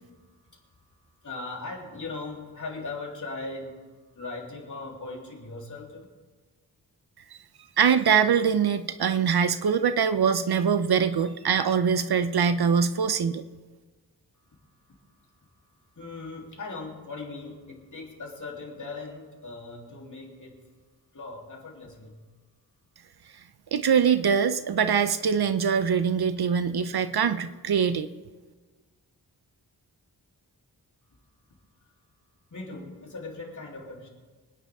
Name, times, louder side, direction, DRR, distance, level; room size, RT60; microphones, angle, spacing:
voice 1, 1.2-3.7 4.1-6.0 15.9-20.6 21.1-22.2 32.5-34.1, left 3 dB, 50° left, -1 dB, 3.3 m, -39 dB
voice 2, 7.8-13.5 23.7-28.1, right 7 dB, 70° right, 12 dB, 0.7 m, -23 dB
25.5 x 9.9 x 3.6 m, 1.3 s
wide cardioid pair, 80°, 40 cm